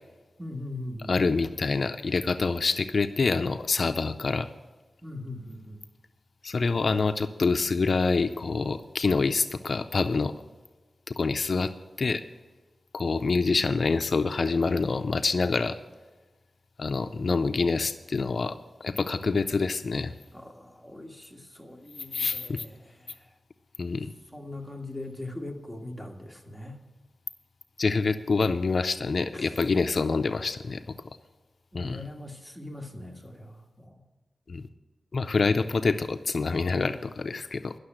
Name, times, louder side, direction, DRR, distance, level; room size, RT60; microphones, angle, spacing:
voice 1, 0.4-1.2 5.0-5.9 20.3-23.3 24.3-26.8 29.3-29.5 31.7-34.0, left 1 dB, 5° right, 2 dB, 1.7 m, -41 dB
voice 2, 1.1-4.5 6.4-10.3 11.1-11.7 12.0-12.2 12.9-15.8 16.8-20.1 22.1-22.6 23.8-24.1 27.8-30.8 31.7-32.0 34.5-34.6 35.1-37.7, left 4 dB, 60° left, 10 dB, 0.4 m, -26 dB
11.5 x 6.6 x 8.8 m, 1.2 s
wide cardioid pair, 75°, 0 cm